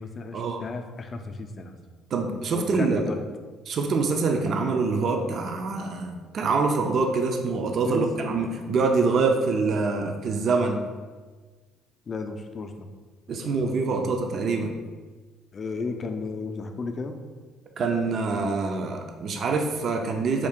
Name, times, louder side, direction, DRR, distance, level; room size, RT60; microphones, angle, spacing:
voice 1, 0.0-1.8 2.5-3.2 7.8-8.1 12.1-12.9 13.3-14.1 15.5-17.2, left 4 dB, 40° left, 6 dB, 0.4 m, -34 dB
voice 2, 2.1-3.1 3.7-10.8 13.3-14.7 17.8-20.5, right 4 dB, 55° right, 4 dB, 0.4 m, -25 dB
3.6 x 2.4 x 3.5 m, 1.4 s
supercardioid pair, 80°, 0 cm